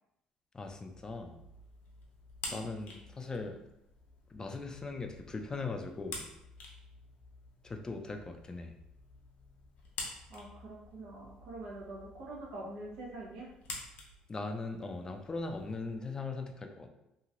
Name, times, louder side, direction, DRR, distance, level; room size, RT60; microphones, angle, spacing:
voice 1, 0.5-1.4 2.5-3.6 4.3-6.2 7.6-8.7 14.3-16.9, left 3 dB, 25° left, 5 dB, 0.4 m, -39 dB
sound 1, 0.6-16.0, left 3 dB, 70° left, 0.7 m, -49 dB
voice 2, 10.3-13.5, right 2 dB, 80° right, -4 dB, 1.0 m, -45 dB
3.0 x 2.7 x 2.5 m, 0.83 s
supercardioid pair, 85°, 3 cm